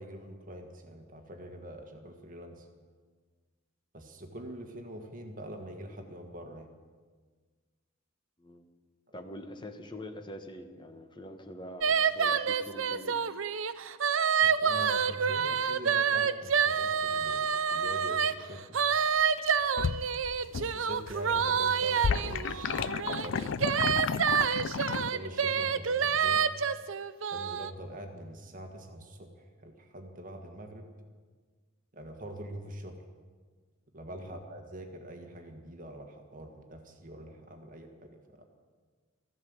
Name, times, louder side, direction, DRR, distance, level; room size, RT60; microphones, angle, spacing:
voice 1, 0.0-2.6 3.9-6.7 14.4-18.8 20.5-24.1 25.0-26.4 27.3-29.3 29.6-30.9 31.9-33.0 33.9-38.1 38.4-38.5, right 1 dB, 40° right, 4 dB, 1.7 m, -44 dB
voice 2, 9.1-13.2 34.2-34.4, left 1 dB, 20° left, 6 dB, 1.3 m, -44 dB
sound 1, 11.8-18.3 18.7-27.7, right 7 dB, 65° right, 0.7 m, -28 dB
sound 2, 19.2-20.8 21.1-25.1, left 6 dB, 60° left, 0.4 m, -33 dB
15.0 x 12.0 x 8.0 m, 1.5 s
head